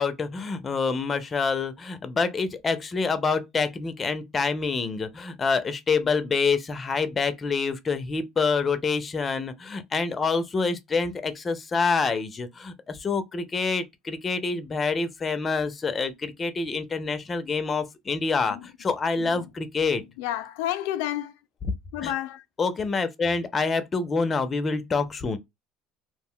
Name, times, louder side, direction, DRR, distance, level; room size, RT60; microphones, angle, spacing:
voice 1, 0.0-20.0 22.0-22.1 22.6-25.4, left 4 dB, 25° left, 0.5 m, -27 dB
voice 2, 20.2-21.3 21.9-22.4, left 13 dB, 90° left, 0.3 m, -30 dB
2.4 x 2.1 x 3.6 m
cardioid pair, 120°, 0 cm